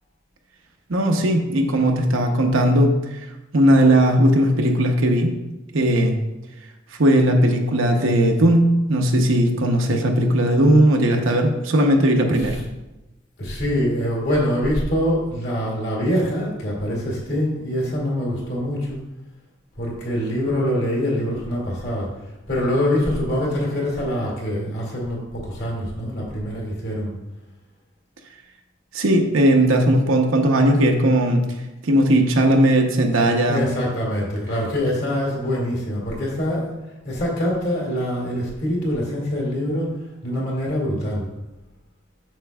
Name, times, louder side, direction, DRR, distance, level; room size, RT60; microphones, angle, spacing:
voice 1, 0.9-2.9 3.5-5.3 5.7-6.2 7.0-12.6 28.9-31.5 31.8-33.7, right 1 dB, 70° right, 2 dB, 0.8 m, -17 dB
voice 2, 13.4-19.0 19.8-22.1 22.5-27.1 33.5-36.7 37.0-41.3, equal, 50° left, -4 dB, 2.2 m, -24 dB
7.5 x 6.7 x 2.3 m, 1.0 s
head